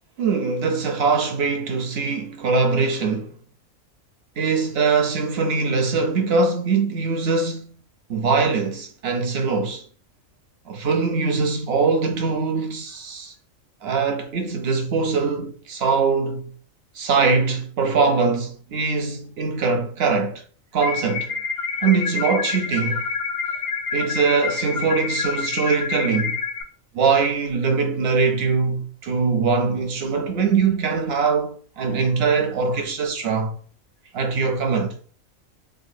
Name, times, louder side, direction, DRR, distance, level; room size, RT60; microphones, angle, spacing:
voice 1, 0.2-3.4 4.4-7.8 8.1-9.8 10.7-13.3 13.8-16.4 16.9-20.4 20.7-21.3 21.8-23.1 23.9-26.4 26.9-33.5 34.1-35.0, right 4 dB, 65° right, 0.7 m, -22 dB
sound 1, 20.8-26.6, left 5 dB, 60° left, 0.7 m, -27 dB
3.6 x 2.2 x 2.5 m
omnidirectional pair, 1.3 m